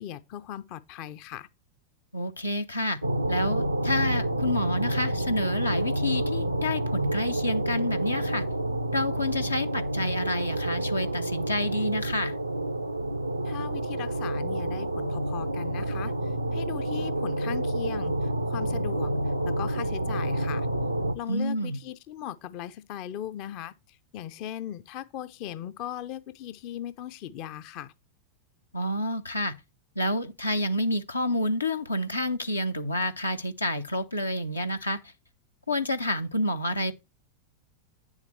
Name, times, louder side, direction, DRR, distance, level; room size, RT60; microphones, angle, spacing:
voice 1, 0.0-1.5 13.4-20.7 21.1-27.9, left 11 dB, 45° left, 0.5 m, -38 dB
voice 2, 2.1-3.0 3.3-8.4 8.9-12.3 21.3-21.8 28.7-29.5 30.0-35.0 35.7-36.9, left 1 dB, 80° left, 0.7 m, -29 dB
sound 1, 3.0-21.1, right 1 dB, 85° right, 0.6 m, -29 dB
9.1 x 7.3 x 3.2 m
figure-of-eight pair, 90°, 0 cm